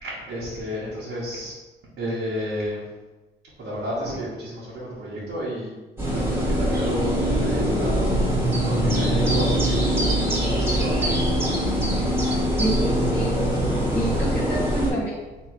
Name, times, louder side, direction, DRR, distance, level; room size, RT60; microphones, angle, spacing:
voice 1, 0.0-1.5 2.0-2.9 3.6-5.7 6.0-8.4 8.6-11.2, equal, 70° right, -8 dB, 1.3 m, -31 dB
sound 1, 6.0-14.9, equal, 10° right, 1.4 m, -22 dB
voice 2, 12.6-13.4 13.9-15.2, right 1 dB, 10° left, -7 dB, 0.8 m, -28 dB
3.3 x 3.1 x 4.7 m, 1.2 s
cardioid pair, 90°, 20 cm